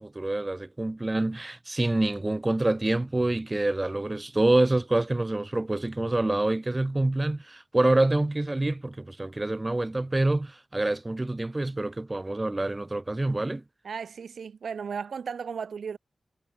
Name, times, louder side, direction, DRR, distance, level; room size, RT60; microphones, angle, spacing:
voice 1, 0.0-13.6, right 2 dB, 25° right, 2.3 m, -26 dB
voice 2, 13.8-16.0, right 6 dB, 85° right, 4.2 m, -35 dB
wide cardioid pair, 80°, 0 cm